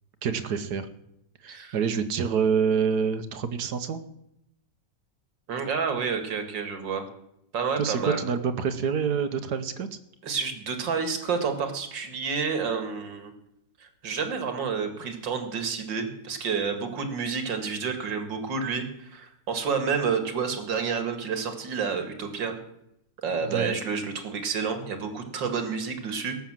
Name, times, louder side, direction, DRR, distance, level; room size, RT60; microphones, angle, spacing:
voice 1, 0.2-0.9 1.4-4.0 7.8-10.0 23.4-23.7, right 6 dB, 65° right, 11 dB, 1.5 m, -27 dB
voice 2, 5.5-7.0 7.5-8.2 10.2-13.3 13.8-22.6 23.2-26.4, right 5 dB, 80° right, 7 dB, 2.5 m, -29 dB
17.5 x 7.1 x 7.4 m, 0.78 s
omnidirectional pair, 2.0 m